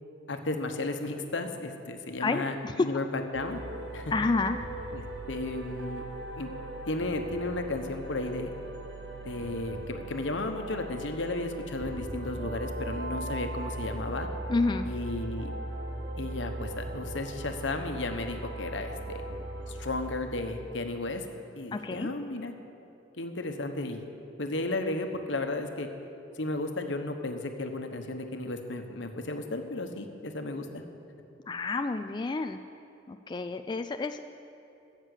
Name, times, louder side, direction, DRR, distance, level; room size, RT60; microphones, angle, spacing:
voice 1, 0.3-3.6 3.9-4.1 4.9-6.0 6.4-6.5 6.9-8.5 9.2-14.3 14.8-15.5 16.2-19.2 19.7-21.2 21.5-22.5 23.2-24.1 24.4-25.9 26.3-30.8, left 2 dB, 75° left, 5 dB, 1.2 m, -34 dB
voice 2, 2.2-2.9 4.1-4.6 14.5-14.9 21.7-22.1 31.5-32.6 33.1-34.2, left 3 dB, 25° left, 8 dB, 0.3 m, -29 dB
sound 1, 3.3-20.2, right 2 dB, 65° right, 1.3 m, -38 dB
14.5 x 7.4 x 8.2 m, 2.8 s
head